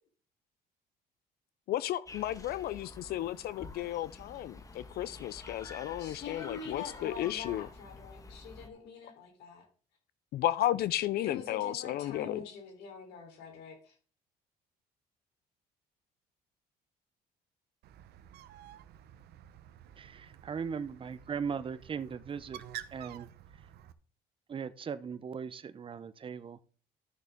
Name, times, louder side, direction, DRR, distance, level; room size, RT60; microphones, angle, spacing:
voice 1, 1.7-7.7 10.3-12.4, left 13 dB, 65° left, 0.5 m, -33 dB
sound 1, 2.1-8.7, left 3 dB, 20° left, 1.5 m, -49 dB
voice 2, 6.0-9.7 11.2-14.0, left 6 dB, 85° left, 3.7 m, -45 dB
Bird, 17.8-23.9, right 11 dB, 75° right, 0.9 m, -50 dB
voice 3, 20.0-22.6 22.9-23.3 24.5-26.6, right 6 dB, 30° right, 0.8 m, -38 dB
12.5 x 6.6 x 3.6 m
cardioid pair, 110°, 17 cm